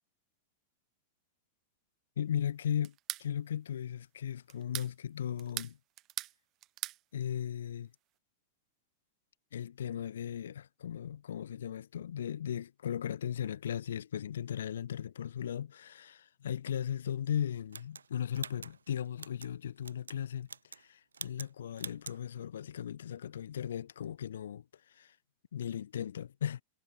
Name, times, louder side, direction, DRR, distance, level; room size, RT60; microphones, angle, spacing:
voice 1, 2.2-2.9 3.2-5.8 7.1-7.9 9.5-20.5 20.7-25.1 25.5-26.6, left 9 dB, 75° left, 3.3 m, -37 dB
sound 1, 2.8-3.3 4.5-4.9 5.4-6.4 6.6-7.0, right 16 dB, 40° right, 0.6 m, -39 dB
sound 2, 17.7-19.5 19.8-20.2 20.4-20.9 21.1-21.5 21.8-22.2, right 6 dB, 85° right, 5.8 m, -45 dB
hypercardioid pair, 100°, 0 cm